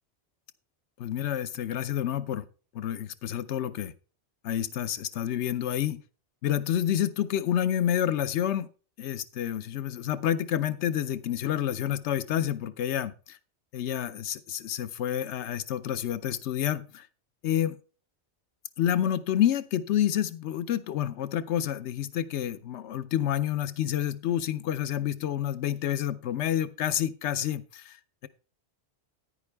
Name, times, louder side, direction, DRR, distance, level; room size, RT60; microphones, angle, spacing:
voice 1, 1.0-2.4 2.7-3.9 4.4-6.0 6.4-8.7 9.0-13.4 13.7-17.1 17.4-17.8 18.8-28.0, left 10 dB, 80° left, 1.0 m, -29 dB
9.9 x 9.7 x 3.4 m
omnidirectional pair, 1.1 m